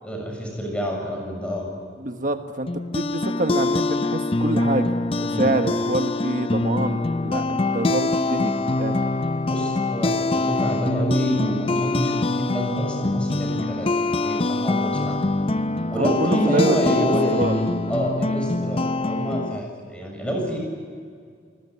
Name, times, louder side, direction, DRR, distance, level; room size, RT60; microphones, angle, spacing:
voice 1, 0.0-1.7 5.3-5.5 9.5-15.2 15.9-20.6, equal, 5° left, 0 dB, 6.8 m, -28 dB
voice 2, 2.0-9.0 16.0-17.5, right 1 dB, 45° right, 6 dB, 1.4 m, -26 dB
sound 1, 2.7-19.6, left 2 dB, 30° left, 0.7 m, -24 dB
27.0 x 21.0 x 9.8 m, 2.1 s
head